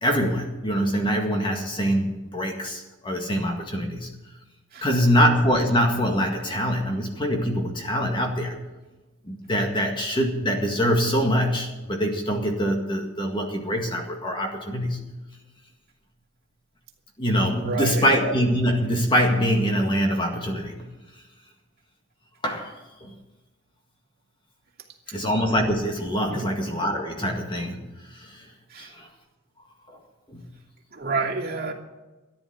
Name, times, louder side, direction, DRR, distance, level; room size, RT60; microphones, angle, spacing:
voice 1, 0.0-4.1 4.8-8.6 9.3-15.1 17.2-20.9 22.4-23.1 25.1-28.5 28.8-29.1 29.9-30.0 30.3-30.5, equal, 25° left, 2 dB, 1.9 m, -24 dB
voice 2, 17.6-18.0 25.1-25.2 26.3-26.5 28.7-28.9 30.9-31.7, right 4 dB, 50° right, -1 dB, 2.7 m, -29 dB
14.0 x 10.5 x 7.8 m, 1.1 s
head